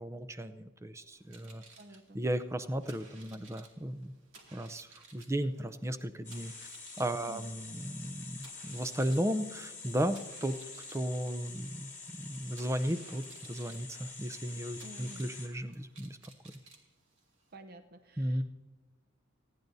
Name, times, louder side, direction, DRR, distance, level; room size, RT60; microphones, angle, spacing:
voice 1, 0.0-1.6 2.1-4.1 4.5-6.5 7.0-10.6 10.9-11.9 12.2-16.2 18.2-18.4, right 1 dB, 15° right, 11 dB, 0.5 m, -35 dB
sound 1, 1.1-17.6, right 3 dB, 60° right, 2.4 m, -58 dB
voice 2, 1.8-2.2 7.2-7.5 14.8-15.2 17.5-18.4, equal, 45° right, 7 dB, 0.8 m, -51 dB
sound 2, 6.2-15.5, left 4 dB, 10° left, 1.7 m, -47 dB
27.0 x 10.5 x 2.7 m, 1.3 s
head